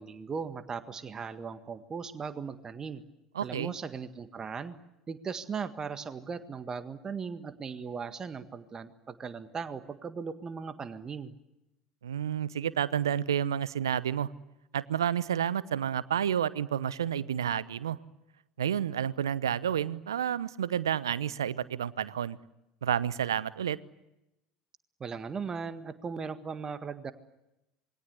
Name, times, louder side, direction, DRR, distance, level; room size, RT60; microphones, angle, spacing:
voice 1, 0.0-3.0 3.4-4.8 5.1-11.3 25.0-27.1, right 5 dB, 30° right, 10 dB, 1.7 m, -38 dB
voice 2, 3.3-3.7 12.0-14.3 14.7-18.0 18.6-22.4 22.8-23.8, right 9 dB, 75° right, 19 dB, 0.9 m, -30 dB
27.5 x 22.5 x 8.2 m, 0.90 s
figure-of-eight pair, 65°, 2 cm